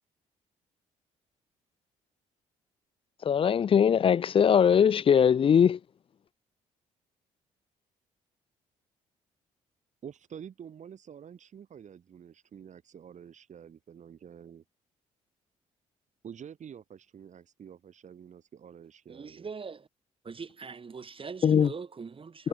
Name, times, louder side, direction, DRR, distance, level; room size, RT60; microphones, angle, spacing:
voice 1, 3.2-5.8 21.4-21.7, left 8 dB, 40° left, 0.4 m, -21 dB
voice 2, 10.0-14.6 16.2-19.5, right 8 dB, 55° right, 3.6 m, -48 dB
voice 3, 19.1-19.9 20.2-22.5, right 5 dB, 40° right, 2.1 m, -41 dB
supercardioid pair, 60°, 15 cm